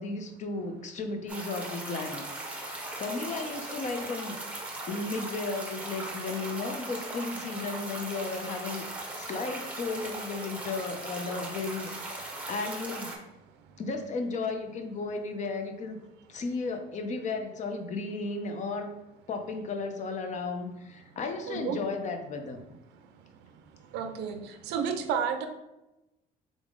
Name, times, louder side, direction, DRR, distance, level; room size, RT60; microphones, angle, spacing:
voice 1, 0.0-4.4 4.9-8.8 9.2-13.1 13.8-16.0 16.3-18.9 19.3-22.6, left 3 dB, 45° left, 6 dB, 0.6 m, -34 dB
sound 1, 1.3-13.2, right 2 dB, 10° right, 0.9 m, -39 dB
voice 2, 21.5-21.8 23.9-25.5, right 7 dB, 85° right, 7 dB, 0.4 m, -31 dB
3.7 x 3.5 x 3.7 m, 0.97 s
cardioid pair, 110°, 17 cm